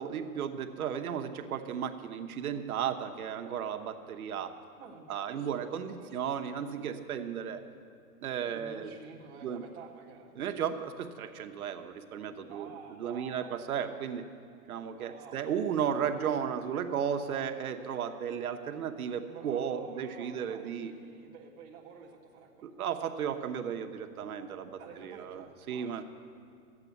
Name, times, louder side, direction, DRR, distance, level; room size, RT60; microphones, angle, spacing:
voice 1, 0.0-4.5 5.1-7.6 8.2-8.9 9.4-9.6 10.4-12.7 13.0-14.3 14.7-20.9 22.6-26.0, right 8 dB, 70° right, 6 dB, 1.1 m, -34 dB
voice 2, 4.7-5.5 5.9-6.2 8.5-10.3 12.5-13.6 14.9-15.5 19.2-23.3 24.8-26.0, right 6 dB, 10° right, -5 dB, 0.5 m, -50 dB
13.5 x 8.3 x 8.1 m, 2.4 s
hypercardioid pair, 160°, 45 cm